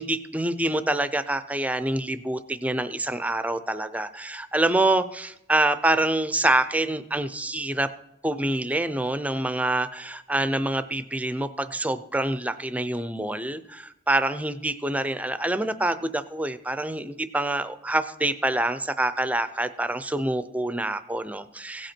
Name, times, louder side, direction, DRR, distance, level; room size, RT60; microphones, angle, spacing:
voice 1, 0.0-7.9 8.2-21.9, right 1 dB, 10° right, 13 dB, 0.5 m, -26 dB
16.5 x 7.9 x 4.4 m, 0.84 s
head